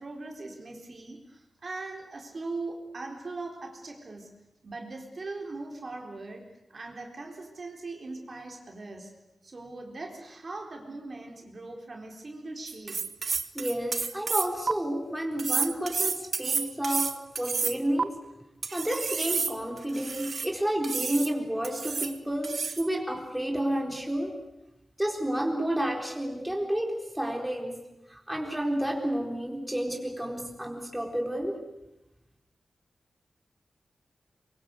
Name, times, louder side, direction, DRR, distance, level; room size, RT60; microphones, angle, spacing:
voice 1, 0.0-4.3 4.6-9.1 9.4-13.0, right 3 dB, 45° right, 1 dB, 4.2 m, -40 dB
sound 1, 12.7-14.7 15.4-18.0 18.6-20.5 20.8-21.3 21.6-22.2 22.4-22.9, right 5 dB, 65° right, 1.1 m, -30 dB
voice 2, 13.5-17.1 17.4-18.1 18.7-24.3 25.0-27.8 28.1-31.6, right 1 dB, 5° right, 0 dB, 4.1 m, -30 dB
23.5 x 23.0 x 8.3 m, 0.95 s
wide cardioid pair, 95°, 0 cm